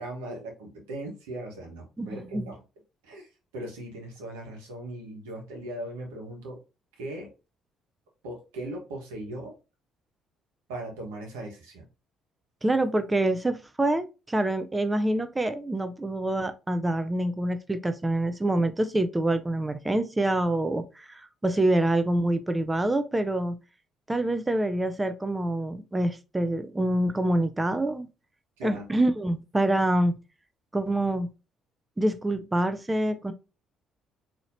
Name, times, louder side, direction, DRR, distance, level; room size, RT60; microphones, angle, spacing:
voice 1, 0.0-2.6 3.0-6.6 7.0-7.3 8.2-9.5 10.7-11.8 28.6-28.8, right 1 dB, 85° right, 1.2 m, -38 dB
voice 2, 2.0-2.5 12.6-23.5 24.1-28.1 28.6-30.2 30.7-31.3 32.0-33.3, right 1 dB, 20° right, 0.4 m, -26 dB
4.1 x 2.9 x 2.6 m
hypercardioid pair, 55°, 0 cm